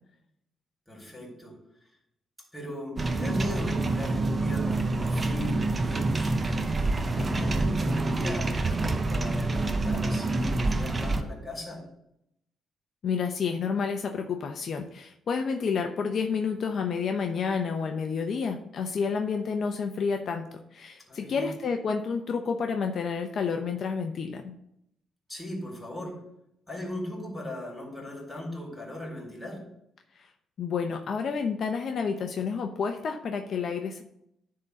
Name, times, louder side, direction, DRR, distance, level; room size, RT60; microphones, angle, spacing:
voice 1, 0.9-1.5 2.5-6.4 7.2-11.8 21.1-21.5 25.3-26.2 26.7-29.7, left 1 dB, ahead, -1 dB, 4.2 m, -38 dB
sound 1, 3.0-11.2, right 2 dB, 30° right, 0.8 m, -27 dB
voice 2, 13.0-24.5 30.2-30.3 30.6-34.0, left 5 dB, 55° left, 5 dB, 0.8 m, -30 dB
10.5 x 3.9 x 6.9 m, 0.78 s
cardioid pair, 90°, 0 cm